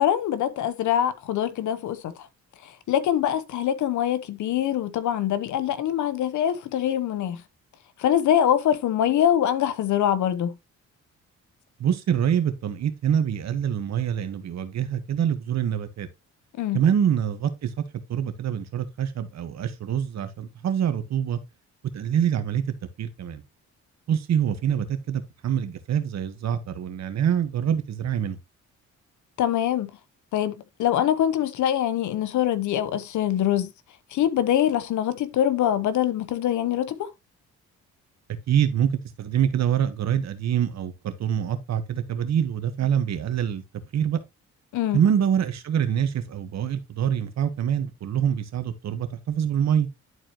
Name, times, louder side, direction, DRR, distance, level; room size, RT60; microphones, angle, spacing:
voice 1, 0.0-2.1 2.9-7.4 8.0-10.5 16.6-16.8 29.4-29.9 30.3-33.7 34.1-37.1 44.7-45.0, left 10 dB, 75° left, 1.0 m, -24 dB
voice 2, 11.8-16.1 16.7-17.7 18.1-21.4 21.9-22.6 23.0-23.4 24.1-28.4 38.5-38.9 39.2-43.6 43.9-44.2 44.9-49.9, right 9 dB, 60° right, 1.4 m, -25 dB
11.0 x 4.4 x 3.0 m
cardioid pair, 90°, 30 cm